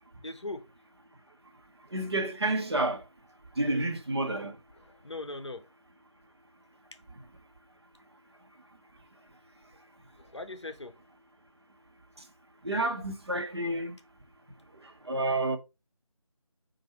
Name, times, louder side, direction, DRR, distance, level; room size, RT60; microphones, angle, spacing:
voice 1, 0.2-0.7 3.6-3.9 4.9-5.6 10.2-10.9, left 2 dB, 50° left, 0.8 m, -40 dB
voice 2, 1.9-3.0 3.6-4.6 12.6-13.9 15.1-15.6, right 2 dB, 45° right, 0.9 m, -29 dB
4.2 x 2.6 x 4.3 m
figure-of-eight pair, 165°, 18 cm